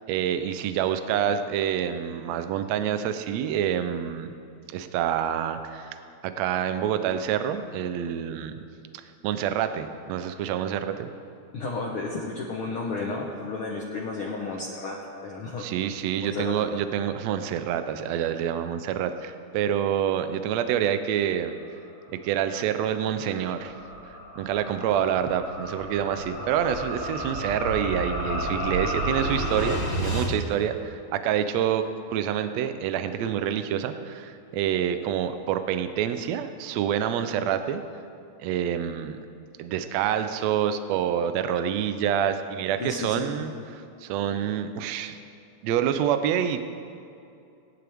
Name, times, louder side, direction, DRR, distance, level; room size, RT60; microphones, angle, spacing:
voice 1, 0.1-4.3 4.7-6.0 6.2-8.5 8.9-11.1 15.6-21.6 22.2-23.7 24.4-31.8 32.1-37.8 38.4-39.2 39.6-45.2 45.6-46.6, right 9 dB, 75° right, 9 dB, 1.7 m, -27 dB
voice 2, 11.5-15.7 16.2-16.8 42.8-43.5, left 3 dB, 60° left, -2 dB, 1.5 m, -33 dB
sound 1, 23.0-30.3, right 1 dB, 20° left, 1.7 m, -31 dB
19.0 x 11.5 x 3.5 m, 2.6 s
omnidirectional pair, 3.5 m